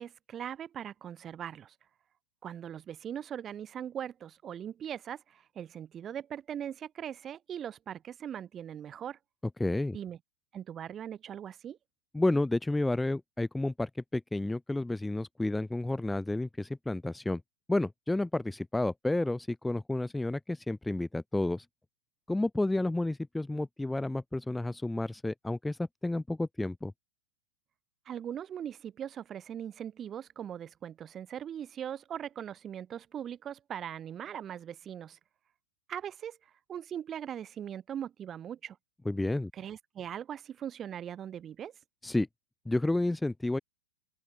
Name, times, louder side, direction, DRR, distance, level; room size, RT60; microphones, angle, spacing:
voice 1, 0.0-1.7 2.4-9.2 9.9-10.2 10.5-11.8 28.0-35.2 35.9-36.4 36.7-38.8 39.5-41.7, right 9 dB, 20° right, 6.6 m, -40 dB
voice 2, 9.6-10.0 12.1-17.4 17.7-21.7 22.3-26.9 39.1-39.5 42.0-42.3 42.7-43.6, left 2 dB, 5° left, 4.1 m, -31 dB
open air
supercardioid pair, 165°, 0 cm